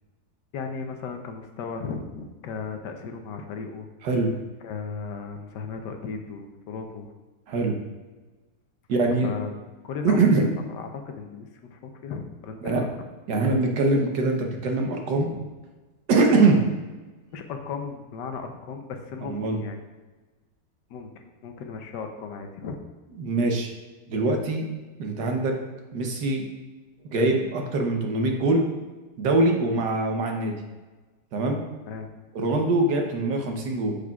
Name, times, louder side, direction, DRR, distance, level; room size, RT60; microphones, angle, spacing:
voice 1, 0.5-3.9 4.6-7.1 9.2-9.5 9.8-12.9 15.2-15.4 17.3-19.8 20.9-22.8 31.8-32.1, left 5 dB, 75° left, 5 dB, 1.4 m, -36 dB
voice 2, 4.0-4.3 7.5-7.8 8.9-9.3 10.0-10.5 12.6-12.8 13.3-15.3 16.1-16.6 19.2-19.6 23.2-23.7 24.1-24.7 25.0-25.6 25.9-26.5 27.0-28.7 29.2-30.6 31.3-31.6 32.3-33.9, right 3 dB, 75° right, 2 dB, 1.5 m, -23 dB
8.4 x 6.5 x 2.3 m, 1.2 s
omnidirectional pair, 1.9 m